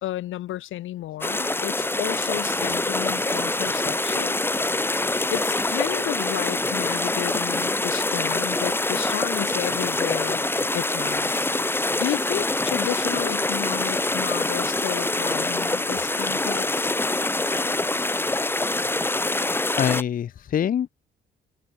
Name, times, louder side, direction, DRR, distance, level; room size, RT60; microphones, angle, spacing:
voice 1, 0.0-4.4 5.3-10.4 10.7-16.9, left 14 dB, 80° left, 2.9 m, -32 dB
sound 1, 1.2-20.0, left 2 dB, 10° left, 1.0 m, -25 dB
voice 2, 19.8-20.9, left 9 dB, 45° left, 0.6 m, -24 dB
cardioid pair, 90°, 20 cm